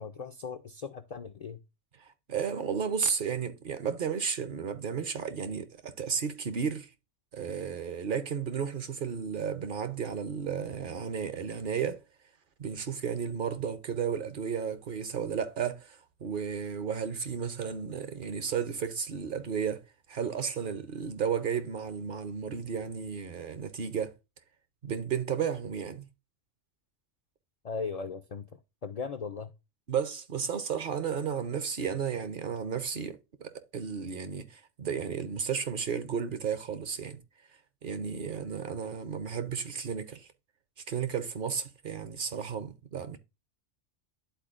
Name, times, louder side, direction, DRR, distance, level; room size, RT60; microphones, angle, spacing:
voice 1, 0.0-1.6 27.6-28.5 28.8-29.5, left 5 dB, 65° left, 0.3 m, -38 dB
voice 2, 2.0-6.9 7.3-12.0 12.6-19.8 20.1-24.1 24.8-26.1 29.9-37.2 37.8-40.3 40.9-43.2, right 7 dB, 55° right, 0.7 m, -33 dB
11.5 x 4.2 x 2.4 m
omnidirectional pair, 1.2 m